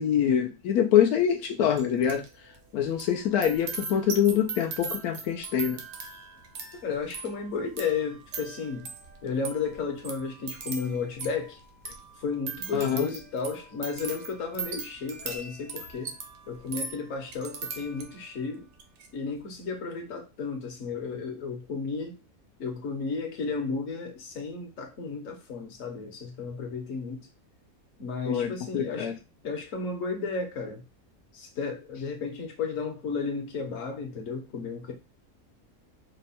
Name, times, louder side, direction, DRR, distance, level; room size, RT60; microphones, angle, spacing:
voice 1, 0.0-2.2 2.7-5.8 12.7-13.1 28.3-29.1, left 9 dB, 90° left, 1.1 m, -25 dB
sound 1, 1.8-2.3 2.5-18.3 18.7-19.1, right 5 dB, 75° right, 1.2 m, -40 dB
voice 2, 6.8-8.9 9.2-11.6 12.2-16.1 16.5-18.7 19.1-22.1 22.6-27.2 28.0-29.1 29.4-30.8 31.3-34.9, left 4 dB, 65° left, 1.3 m, -33 dB
4.5 x 2.2 x 4.1 m
omnidirectional pair, 1.5 m